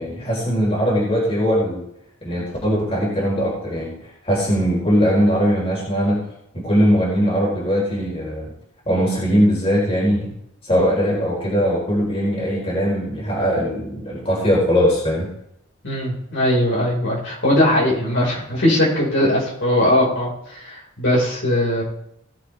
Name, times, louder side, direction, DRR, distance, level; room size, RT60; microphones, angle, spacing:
voice 1, 0.0-1.8 2.2-3.9 4.2-6.2 6.5-8.5 8.9-10.3 10.6-15.3, equal, 30° left, -4 dB, 4.6 m, -20 dB
voice 2, 15.8-21.8, left 1 dB, 65° left, -4 dB, 5.4 m, -20 dB
19.0 x 7.8 x 3.6 m, 0.77 s
head